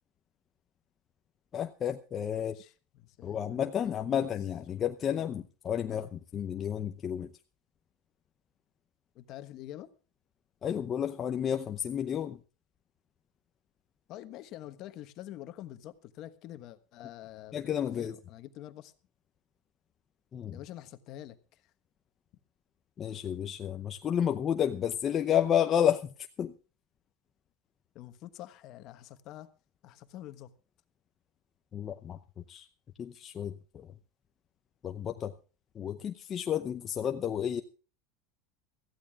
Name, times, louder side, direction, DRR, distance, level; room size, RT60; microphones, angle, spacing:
voice 1, 1.5-2.6 3.2-7.3 10.6-12.4 17.5-18.2 20.3-20.6 23.0-26.5 31.7-32.2 32.5-32.7 33.0-33.9 34.8-35.3 35.7-37.6, left 9 dB, 30° left, 6 dB, 0.7 m, -31 dB
voice 2, 2.3-4.3 5.9-6.1 9.1-9.9 14.1-18.9 20.5-21.7 27.9-29.5 29.8-30.5, left 13 dB, 50° left, 10 dB, 1.2 m, -47 dB
23.5 x 14.5 x 2.4 m, 0.36 s
supercardioid pair, 135°, 0 cm